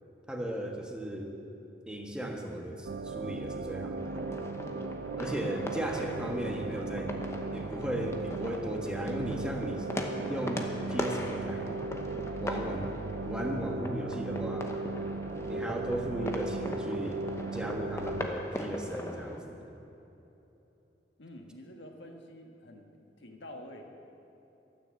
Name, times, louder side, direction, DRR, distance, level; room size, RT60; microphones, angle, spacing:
voice 1, 0.3-1.3 1.9-4.2 5.2-7.1 7.5-9.9 10.3-11.7 12.4-12.9 13.3-14.7 15.5-19.7, equal, 5° right, 1 dB, 1.3 m, -36 dB
sound 1, 2.8-18.3, right 3 dB, 60° right, 0.4 m, -37 dB
sound 2, 4.0-19.4, left 1 dB, 15° left, 0.9 m, -40 dB
voice 2, 21.2-22.9 23.2-24.0, left 1 dB, 85° left, 3 dB, 1.6 m, -48 dB
13.0 x 9.7 x 7.7 m, 3.0 s
head